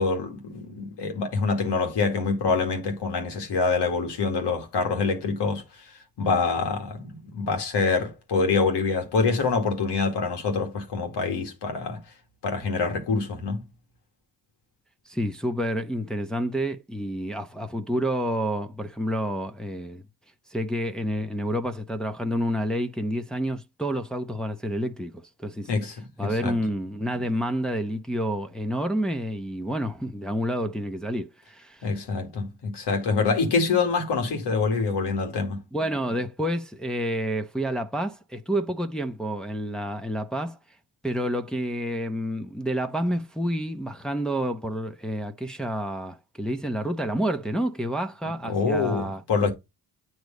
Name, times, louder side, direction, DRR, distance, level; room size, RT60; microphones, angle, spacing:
voice 1, 0.0-5.6 6.2-12.0 12.4-13.6 25.7-26.0 26.2-26.6 31.8-35.6 48.2-49.5, left 4 dB, 75° left, 2.0 m, -25 dB
voice 2, 15.1-20.0 20.5-25.7 26.2-31.9 35.7-40.6 41.0-49.2, equal, ahead, 0.8 m, -29 dB
8.0 x 3.1 x 5.2 m
supercardioid pair, 55°, 41 cm